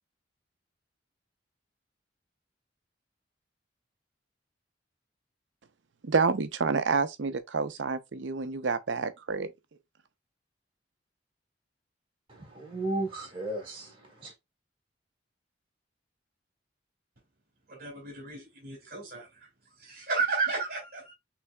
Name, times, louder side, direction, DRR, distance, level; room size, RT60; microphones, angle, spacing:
voice 1, 6.0-9.5, right 4 dB, 80° right, 0.6 m, -28 dB
voice 2, 12.3-14.3, right 2 dB, 30° right, 2.0 m, -35 dB
voice 3, 17.7-19.5 19.8-21.1, right 4 dB, 55° right, 2.1 m, -33 dB
6.0 x 3.3 x 2.2 m
head